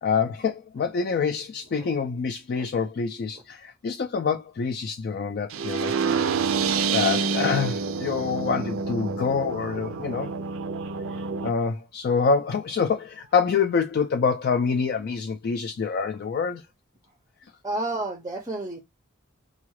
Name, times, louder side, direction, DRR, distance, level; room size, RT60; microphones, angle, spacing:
voice 1, 0.0-5.9 6.9-10.3 11.4-16.6, left 5 dB, 50° left, 0.3 m, -26 dB
sound 1, 5.5-11.5, right 5 dB, 75° right, 0.4 m, -27 dB
voice 2, 17.6-18.8, right 2 dB, 15° right, 0.5 m, -31 dB
3.7 x 2.3 x 3.0 m
head